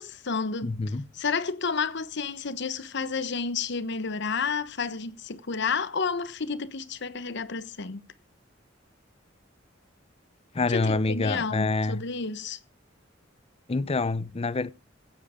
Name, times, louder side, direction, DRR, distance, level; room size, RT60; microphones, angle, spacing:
voice 1, 0.0-0.7 1.1-8.1 10.7-12.6, left 5 dB, 60° left, 1.0 m, -31 dB
voice 2, 0.6-1.0 10.5-12.0 13.7-14.7, left 3 dB, 30° left, 0.6 m, -26 dB
16.0 x 7.8 x 5.0 m
head